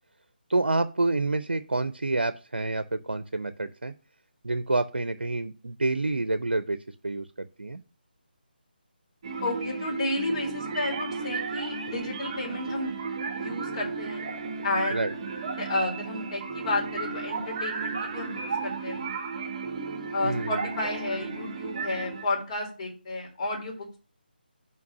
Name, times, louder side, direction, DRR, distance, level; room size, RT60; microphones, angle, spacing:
voice 1, 0.5-3.9 4.4-7.8 14.9-15.1 20.2-20.7, right 2 dB, 80° right, 12 dB, 0.6 m, -28 dB
sound 1, 9.2-22.3, right 4 dB, 35° right, 1.0 m, -34 dB
voice 2, 9.4-12.9 13.3-14.3 14.6-15.0 15.6-19.1 20.1-24.0, left 2 dB, 35° left, -2 dB, 3.5 m, -32 dB
5.9 x 4.6 x 6.2 m, 0.35 s
figure-of-eight pair, 155°, 6 cm